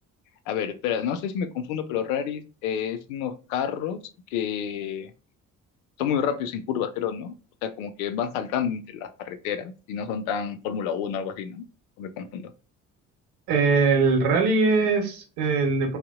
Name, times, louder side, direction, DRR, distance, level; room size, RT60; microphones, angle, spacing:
voice 1, 0.5-4.0 4.3-5.1 6.0-7.3 7.6-11.6 12.0-12.5, left 8 dB, 70° left, 8 dB, 0.5 m, -29 dB
voice 2, 13.5-16.0, right 4 dB, 65° right, 4 dB, 0.8 m, -21 dB
2.7 x 2.0 x 2.3 m, 0.34 s
figure-of-eight pair, 45°, 43 cm